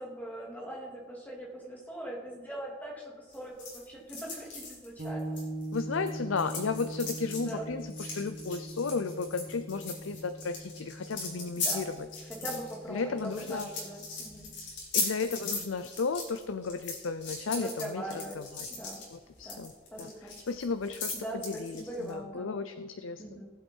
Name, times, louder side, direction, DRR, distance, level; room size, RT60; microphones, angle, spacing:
voice 1, 0.0-3.5 3.9-5.2 7.3-7.7 11.6-11.9 12.4-14.5 17.5-18.4 18.7-19.0 19.4-19.6 19.9-20.3 21.2-22.5 23.2-23.4, right 1 dB, 10° left, -3 dB, 2.8 m, -41 dB
sound 1, 3.3-6.1 6.4-22.1, left 4 dB, 65° left, 3.6 m, -38 dB
sound 2, 5.0-14.7, right 1 dB, 50° right, 2.2 m, -42 dB
voice 2, 5.7-12.1 12.9-13.7 14.9-18.7 19.1-19.7 20.0-23.2, left 4 dB, 90° left, 10 dB, 0.6 m, -34 dB
18.5 x 8.1 x 4.6 m, 1.4 s
head